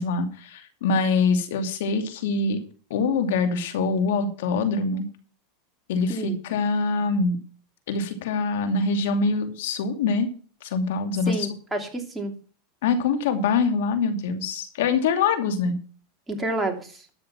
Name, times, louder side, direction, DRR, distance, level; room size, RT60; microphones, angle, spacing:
voice 1, 0.0-2.6 2.9-5.1 5.9-7.4 7.9-10.3 10.6-11.3 12.8-15.8, left 4 dB, 80° left, 7 dB, 2.6 m, -24 dB
voice 2, 6.1-6.4 11.3-12.3 16.3-17.0, right 1 dB, 10° right, 1 dB, 2.8 m, -29 dB
12.5 x 6.8 x 5.9 m, 0.40 s
supercardioid pair, 125°, 0 cm